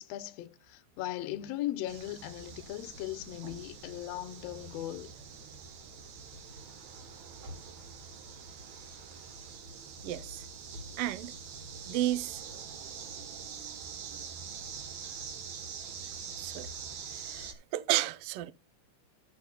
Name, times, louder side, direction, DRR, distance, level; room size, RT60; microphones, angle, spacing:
voice 1, 0.0-5.1 15.0-15.2, left 14 dB, 75° left, 1.6 m, -38 dB
sound 1, 1.9-17.5, right 5 dB, 65° right, 2.4 m, -45 dB
voice 2, 10.0-10.4 11.0-11.3 11.9-12.4 16.4-16.7 17.2-18.5, right 14 dB, 85° right, 1.3 m, -32 dB
14.0 x 8.5 x 2.2 m
omnidirectional pair, 3.7 m